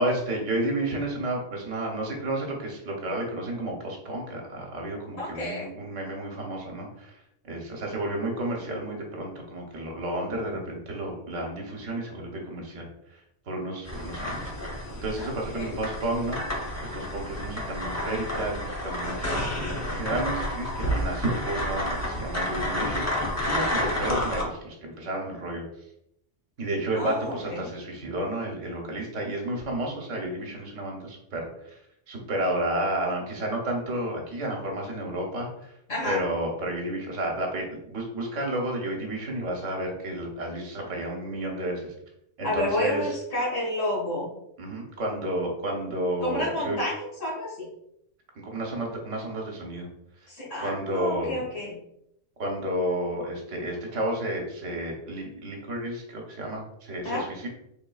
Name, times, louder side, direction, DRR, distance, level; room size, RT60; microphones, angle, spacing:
voice 1, 0.0-7.2 7.4-13.2 13.5-14.7 15.0-25.6 26.6-31.8 32.1-35.7 36.0-41.9 42.4-43.1 44.6-46.8 48.4-49.9 50.6-51.4 52.4-57.5, right 1 dB, 75° right, 1 dB, 1.3 m, -31 dB
voice 2, 5.2-5.7 15.2-15.7 23.7-23.9 26.9-27.7 35.9-36.2 42.4-44.3 46.2-47.7 50.3-51.8 57.0-57.2, left 1 dB, 85° left, -6 dB, 2.1 m, -30 dB
sound 1, 13.9-24.4, left 1 dB, 25° left, 0.4 m, -30 dB
3.9 x 3.6 x 2.3 m, 0.77 s
omnidirectional pair, 1.3 m